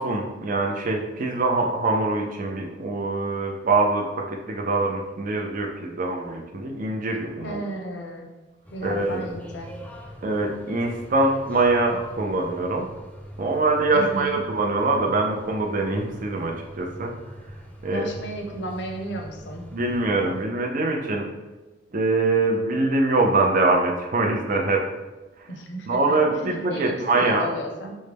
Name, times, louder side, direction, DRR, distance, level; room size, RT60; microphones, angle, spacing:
voice 1, 0.0-7.6 8.8-9.3 10.2-12.9 13.4-17.1 17.8-18.1 19.7-21.3 21.9-24.8 25.4-25.5 25.9-27.5, right 2 dB, 50° right, 1 dB, 0.5 m, -23 dB
voice 2, 7.4-8.3 8.7-9.7 13.9-14.4 17.9-19.7 25.5-27.9, right 1 dB, 70° left, 3 dB, 0.6 m, -34 dB
sound 1, 8.6-20.5, equal, 10° left, 0.4 m, -42 dB
6.2 x 2.1 x 3.3 m, 1.1 s
head